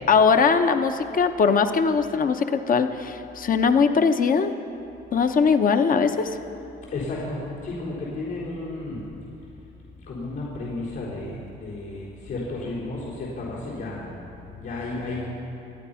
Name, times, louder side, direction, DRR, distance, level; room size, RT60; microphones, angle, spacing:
voice 1, 0.1-4.5 5.1-6.4, left 5 dB, 45° left, 8 dB, 0.8 m, -20 dB
voice 2, 6.9-9.1 10.1-15.2, left 2 dB, 85° left, -8 dB, 4.3 m, -33 dB
27.0 x 9.2 x 5.7 m, 2.8 s
cardioid pair, 90°, 20 cm